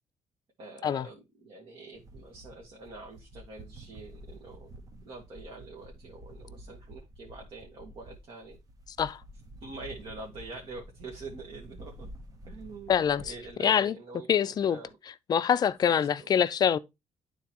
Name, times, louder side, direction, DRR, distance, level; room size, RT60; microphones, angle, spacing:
voice 1, 0.6-4.7 5.0-8.6 9.6-12.1 12.5-14.9 15.9-16.3, right 3 dB, 50° right, 1.6 m, -45 dB
sound 1, 1.9-13.5, right 1 dB, 30° right, 0.9 m, -49 dB
voice 2, 12.9-13.2 13.6-13.9 14.3-14.8 15.3-16.8, left 8 dB, 35° left, 0.4 m, -24 dB
11.5 x 3.9 x 2.9 m
cardioid pair, 170°, 11 cm